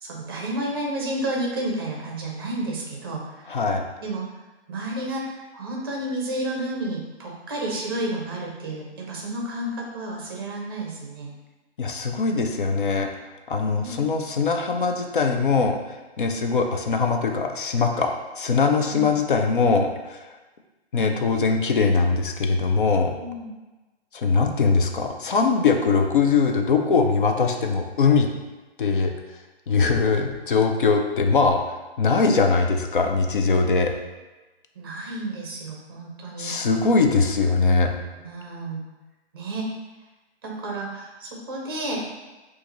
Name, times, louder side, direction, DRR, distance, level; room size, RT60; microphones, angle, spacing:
voice 1, 0.0-3.6 4.0-4.2 4.7-5.3 5.5-11.3 13.8-14.0 18.9-19.1 23.2-23.5 29.7-29.9 34.8-36.5 38.2-38.8 39.3-39.7 40.4-42.0, right 1 dB, 20° right, -2 dB, 0.6 m, -31 dB
voice 2, 3.5-3.8 11.8-15.8 16.2-20.4 20.9-23.1 24.1-28.3 28.8-29.1 29.7-33.9 36.4-37.9, left 4 dB, 50° left, 4 dB, 0.6 m, -21 dB
6.4 x 2.5 x 3.0 m, 1.1 s
hypercardioid pair, 170°, 33 cm